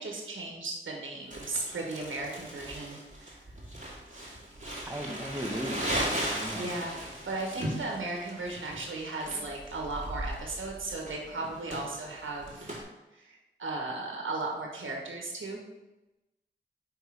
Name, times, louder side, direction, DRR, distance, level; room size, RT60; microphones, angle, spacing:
voice 1, 0.0-3.3 6.5-7.0 7.3-12.7 13.1-15.6, right 2 dB, 80° right, 0 dB, 1.3 m, -36 dB
Crumpling crinkling, 1.3-12.8, right 1 dB, 40° right, 2.1 m, -37 dB
voice 2, 4.9-6.7, equal, 10° right, 2 dB, 1.0 m, -37 dB
5.3 x 3.8 x 4.8 m, 1.0 s
cardioid pair, 45°, 20 cm